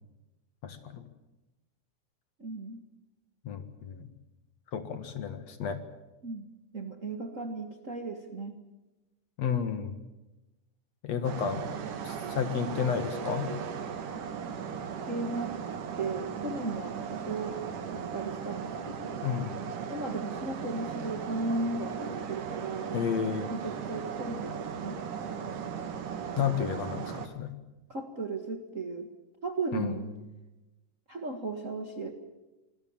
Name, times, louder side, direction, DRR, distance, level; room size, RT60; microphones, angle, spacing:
voice 1, 0.6-1.1 3.4-4.1 4.7-5.8 9.4-9.9 11.0-11.7 12.0-13.5 19.2-19.6 22.9-23.6 26.4-27.6 29.7-30.3, left 7 dB, 60° left, 9 dB, 2.8 m, -32 dB
voice 2, 2.4-2.8 6.2-6.5 6.7-8.5 14.1-14.2 15.1-15.6 16.0-17.6 17.9-19.2 19.9-23.0 23.5-25.0 27.9-29.1 29.4-30.1 31.1-32.1, right 3 dB, 30° right, 5 dB, 1.7 m, -36 dB
sound 1, 11.2-27.3, right 7 dB, 85° right, 3.3 m, -37 dB
26.0 x 20.5 x 7.3 m, 1.0 s
omnidirectional pair, 3.5 m